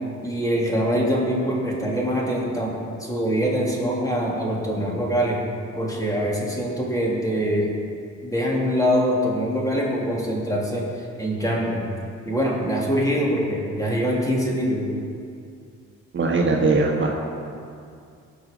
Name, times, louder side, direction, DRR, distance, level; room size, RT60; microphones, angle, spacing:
voice 1, 0.2-2.7 3.0-5.4 5.8-7.7 8.2-11.9 12.2-14.9, equal, 10° left, -4 dB, 3.0 m, -24 dB
voice 2, 16.1-17.1, right 3 dB, 40° right, -1 dB, 1.4 m, -20 dB
17.0 x 6.2 x 5.3 m, 2.4 s
cardioid pair, 90°, 30 cm